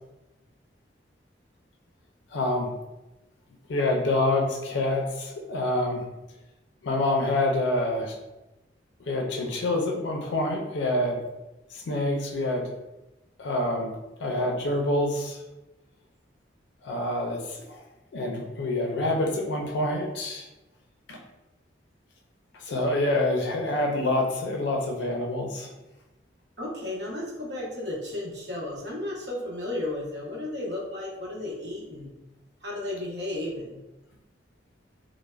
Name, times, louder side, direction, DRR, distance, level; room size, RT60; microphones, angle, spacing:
voice 1, 2.3-2.7 3.7-6.1 6.8-8.2 9.1-11.2 11.7-12.7 13.4-13.9 14.2-15.4 16.8-17.8 18.1-20.5 21.1-21.2 22.6-25.7, left 1 dB, 70° left, 1 dB, 0.4 m, -27 dB
voice 2, 26.6-32.1 32.6-33.8, left 1 dB, 65° right, -4 dB, 0.8 m, -33 dB
3.1 x 2.0 x 2.3 m, 1.0 s
head